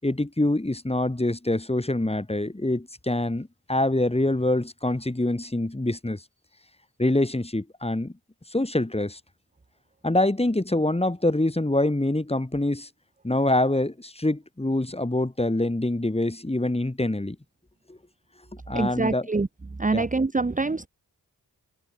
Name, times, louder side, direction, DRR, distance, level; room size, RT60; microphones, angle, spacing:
voice 1, 0.0-6.2 7.0-8.1 8.5-9.2 10.0-12.9 13.2-17.4 17.9-18.0 18.7-19.3 19.9-20.1, left 1 dB, 15° left, 5.3 m, -25 dB
voice 2, 18.7-19.5 19.8-20.9, right 3 dB, 20° right, 1.2 m, -25 dB
open air
cardioid pair, 70°, 37 cm